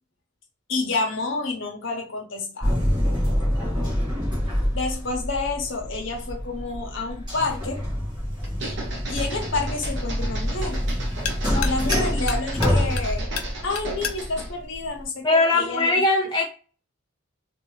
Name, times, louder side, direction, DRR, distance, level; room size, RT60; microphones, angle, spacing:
voice 1, 0.7-2.8 4.7-7.8 8.6-8.8 9.1-10.8 11.6-13.3 13.6-16.0, left 3 dB, 60° left, 1.0 m, -29 dB
sound 1, 2.6-15.0, equal, 20° right, 1.7 m, -26 dB
sound 2, 8.4-14.6, right 2 dB, 55° right, 0.8 m, -36 dB
sound 3, 11.2-15.8, left 8 dB, 80° left, 0.5 m, -37 dB
voice 2, 15.2-16.5, left 2 dB, 20° left, 0.3 m, -21 dB
3.4 x 2.6 x 3.2 m
head